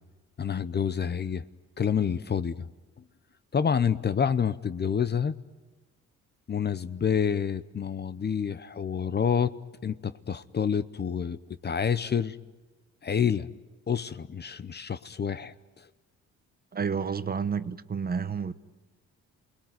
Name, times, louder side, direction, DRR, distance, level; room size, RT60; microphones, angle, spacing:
voice 1, 0.4-1.5 1.8-2.7 3.5-5.3 6.5-9.5 9.8-11.4 11.6-12.4 13.0-13.5 13.9-15.8, left 7 dB, 35° left, 15 dB, 0.8 m, -28 dB
voice 2, 16.7-18.5, right 6 dB, 30° right, 13 dB, 0.9 m, -30 dB
28.5 x 20.5 x 9.5 m, 1.2 s
cardioid pair, 90°, 30 cm